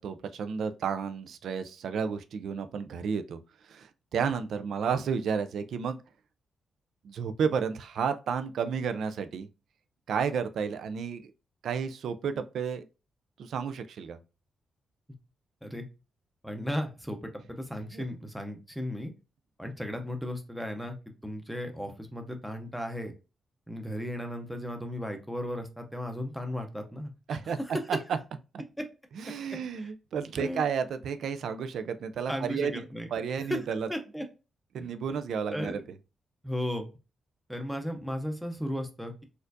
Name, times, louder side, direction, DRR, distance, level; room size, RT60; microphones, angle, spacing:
voice 1, 0.0-3.4 3.7-6.0 7.0-9.5 10.1-11.3 11.6-12.9 13.4-14.2 17.9-18.0 27.3-27.6 27.9-28.0 28.5-28.6 29.1-32.8 33.1-33.9 34.7-35.8, right 6 dB, 75° right, 0.3 m, -32 dB
voice 2, 16.4-19.1 19.6-21.0 21.2-23.1 23.7-27.4 29.8-29.9 30.4-30.6 32.3-33.1 33.4-33.6 33.9-34.2 34.8-34.9 35.5-35.8 36.4-36.9 37.5-39.2, equal, ahead, 0.6 m, -35 dB
4.3 x 2.4 x 2.6 m
cardioid pair, 130°, 0 cm